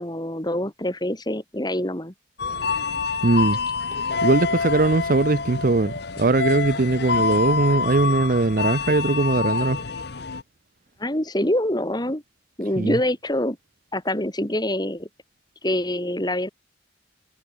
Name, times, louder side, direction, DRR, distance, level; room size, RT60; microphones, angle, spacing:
voice 1, 0.0-2.1 11.0-12.2 12.6-13.6 13.9-15.1 15.6-16.5, left 1 dB, 20° left, 3.4 m, -25 dB
sound 1, 2.4-10.4, left 5 dB, 60° left, 1.0 m, -26 dB
voice 2, 3.2-3.6 4.2-9.8 12.8-13.0, right 3 dB, 45° right, 0.6 m, -20 dB
head